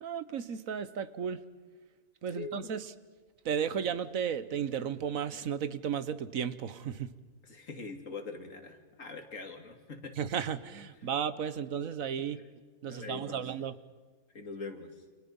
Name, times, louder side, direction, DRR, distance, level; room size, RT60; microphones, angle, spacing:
voice 1, 0.0-1.4 2.2-2.9 3.4-7.1 10.2-12.4 12.8-13.8, right 8 dB, 70° right, 14 dB, 1.3 m, -34 dB
voice 2, 7.4-10.2 12.4-12.5 12.9-13.4 14.3-14.9, left 4 dB, 65° left, 5 dB, 2.7 m, -43 dB
30.0 x 27.0 x 5.5 m, 1.4 s
omnidirectional pair, 1.5 m